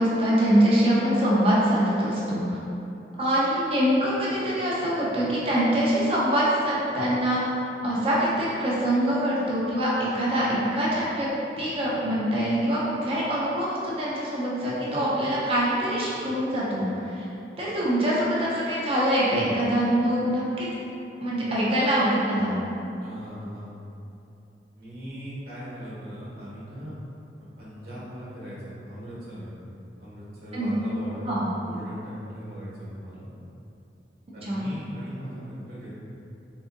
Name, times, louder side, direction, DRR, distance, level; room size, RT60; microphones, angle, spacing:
voice 1, 0.0-2.6 3.2-7.4 7.8-11.3 11.6-17.3 17.6-20.7 21.2-22.5 30.5-30.7 31.2-31.4 34.4-34.6, equal, 35° right, -7 dB, 0.6 m, -24 dB
voice 2, 23.0-23.7 24.7-27.0 27.6-29.6 30.0-33.3 34.3-35.9, equal, 60° right, -8 dB, 1.1 m, -39 dB
3.8 x 2.6 x 2.5 m, 2.8 s
head